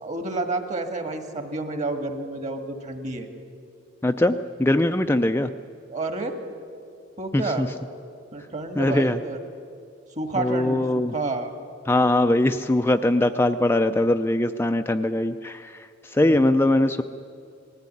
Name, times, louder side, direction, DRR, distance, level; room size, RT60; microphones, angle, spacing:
voice 1, 0.0-3.3 5.9-6.3 7.2-7.7 8.3-9.4 10.2-10.8 11.1-11.5 16.2-16.4, right 2 dB, 40° right, 7 dB, 1.8 m, -30 dB
voice 2, 4.0-5.5 7.3-7.7 8.8-9.2 10.4-11.1 11.9-17.0, left 1 dB, 10° left, 7 dB, 0.4 m, -21 dB
19.5 x 14.5 x 9.8 m, 2.3 s
head